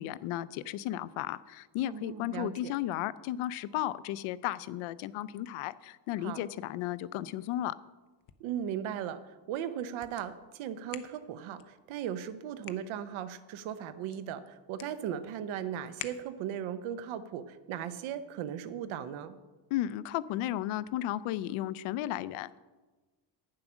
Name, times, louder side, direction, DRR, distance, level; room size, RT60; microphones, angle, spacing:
voice 1, 0.0-7.7 19.7-22.6, left 13 dB, 85° left, 17 dB, 0.6 m, -34 dB
voice 2, 1.9-2.7 6.2-6.4 8.4-19.4, right 9 dB, 75° right, 12 dB, 0.9 m, -37 dB
sound 1, 8.0-16.7, left 12 dB, 45° left, 0.6 m, -52 dB
9.9 x 7.6 x 6.1 m, 1.2 s
cardioid pair, 165°, 48 cm